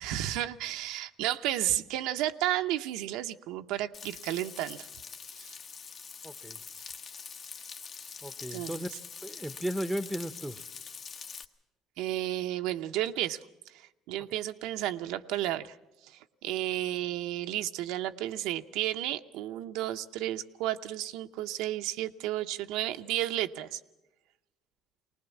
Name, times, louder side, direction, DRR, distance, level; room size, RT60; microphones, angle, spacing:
voice 1, 0.0-4.9 5.4-5.5 8.5-8.8 12.0-13.4 13.7-15.8 16.0-23.8, right 13 dB, 85° right, 7 dB, 0.7 m, -32 dB
Frying (food), 3.9-11.4, left 6 dB, 45° left, 1.1 m, -44 dB
voice 2, 6.2-6.6 8.2-8.9 9.2-10.6, right 1 dB, 5° right, 13 dB, 0.7 m, -35 dB
20.5 x 19.5 x 7.2 m, 1.0 s
cardioid pair, 115°, 0 cm